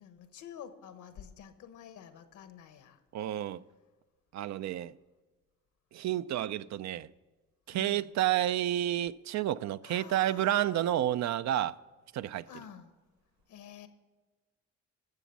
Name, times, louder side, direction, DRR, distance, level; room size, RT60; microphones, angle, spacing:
voice 1, 0.0-3.0 7.7-8.1 9.8-10.8 12.5-12.9 13.5-13.9, left 8 dB, 75° left, 1.2 m, -49 dB
voice 2, 3.1-3.6 4.3-5.0 5.9-7.1 7.7-11.8 12.1-12.5, right 12 dB, 65° right, 0.5 m, -30 dB
13.0 x 7.2 x 7.1 m
cardioid pair, 90°, 30 cm